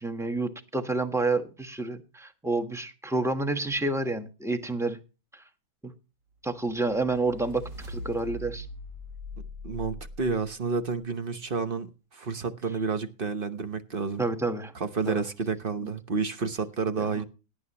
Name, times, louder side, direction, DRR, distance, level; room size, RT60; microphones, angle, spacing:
voice 1, 0.0-5.0 5.3-5.4 5.8-5.9 6.4-8.7 14.2-14.7 15.0-15.3 15.8-15.9 17.0-17.2, right 2 dB, ahead, 1.0 m, -29 dB
sound 1, 6.8-10.8, left 1 dB, 85° right, 3.1 m, -41 dB
voice 2, 9.6-11.9 12.1-14.2 14.8-17.2, right 5 dB, 35° right, 1.1 m, -30 dB
18.0 x 11.0 x 3.0 m
omnidirectional pair, 1.8 m